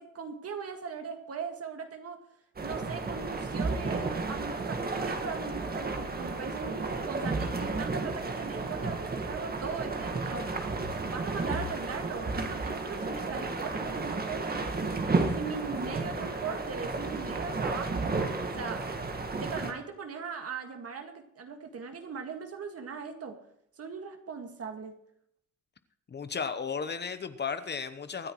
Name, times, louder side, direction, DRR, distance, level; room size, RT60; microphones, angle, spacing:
voice 1, 0.0-2.2 2.6-10.7 11.0-15.1 15.4-18.2 18.6-18.9 19.4-23.4 23.8-25.0, right 5 dB, 50° right, 5 dB, 1.9 m, -39 dB
sound 1, 2.6-19.7, right 3 dB, 30° right, 1.7 m, -33 dB
voice 2, 26.1-28.3, left 6 dB, 35° left, 11 dB, 0.9 m, -34 dB
24.0 x 10.0 x 3.1 m, 0.71 s
cardioid pair, 90°, 30 cm